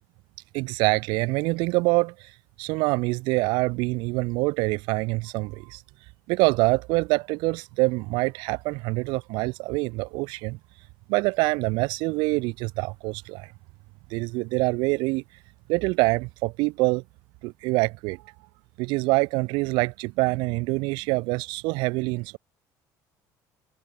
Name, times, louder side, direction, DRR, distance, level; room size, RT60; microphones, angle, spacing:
voice 1, 0.5-2.3 2.6-5.8 6.3-10.6 11.1-13.5 14.1-15.2 15.7-17.0 17.4-18.2 18.8-22.4, right 26 dB, 85° right, 0.6 m, -25 dB
cardioid pair, 125°, 8 cm